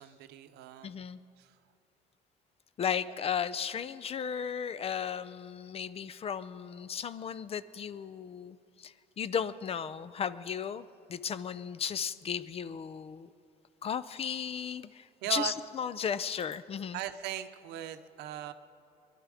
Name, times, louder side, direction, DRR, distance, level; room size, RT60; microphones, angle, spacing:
voice 1, 0.0-1.0 1.4-1.6 15.2-15.5 16.9-18.5, right 13 dB, 90° right, 10 dB, 0.7 m, -38 dB
voice 2, 0.8-1.2 2.8-13.3 13.8-17.0, left 7 dB, 35° left, 15 dB, 0.4 m, -35 dB
22.0 x 11.5 x 4.9 m, 2.5 s
cardioid pair, 110°, 17 cm